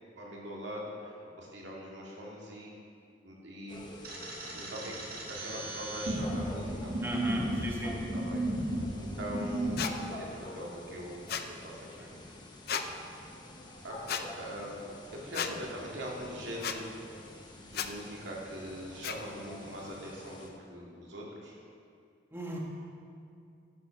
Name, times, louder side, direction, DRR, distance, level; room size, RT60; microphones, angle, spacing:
voice 1, 0.2-2.8 3.2-3.8 4.4-4.9 5.3-6.9 7.2-7.5 7.8-8.7 9.0-11.2 11.4-12.2 13.8-14.7 15.1-16.9 17.7-21.5, equal, 70° right, -3 dB, 2.2 m, -42 dB
sound 1, 3.7-20.5, left 1 dB, 20° left, 0.9 m, -48 dB
sound 2, 4.0-9.8, right 1 dB, 50° right, 1.6 m, -34 dB
voice 2, 7.0-8.0 12.0-12.1 22.3-22.6, right 1 dB, 10° right, -2 dB, 1.2 m, -36 dB
sound 3, 9.8-9.9 11.3-11.5 12.7-12.9 14.1-14.2 15.3-15.5 16.6-16.8 17.7-17.9 19.0-19.2, left 8 dB, 50° left, 0.5 m, -33 dB
9.7 x 7.1 x 6.0 m, 2.4 s
head